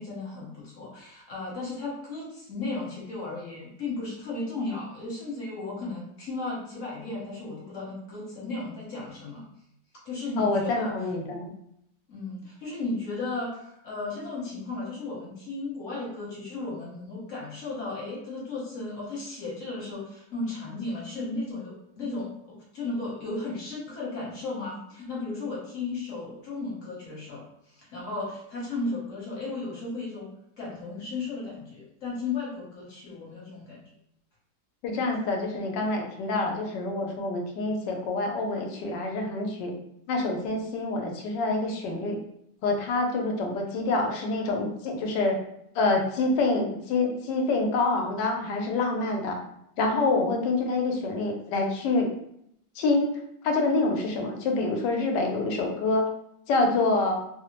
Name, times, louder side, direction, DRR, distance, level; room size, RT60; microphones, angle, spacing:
voice 1, 0.0-9.4 10.0-10.9 12.1-30.3 30.6-33.8, left 3 dB, 50° left, -5 dB, 1.2 m, -35 dB
voice 2, 10.4-11.5 34.8-39.7 40.1-42.2 42.6-45.4 45.7-49.4 49.8-52.1 52.8-53.1 53.4-56.1 56.5-57.2, left 3 dB, 80° left, 3 dB, 1.2 m, -26 dB
3.0 x 2.0 x 2.9 m, 0.75 s
omnidirectional pair, 1.9 m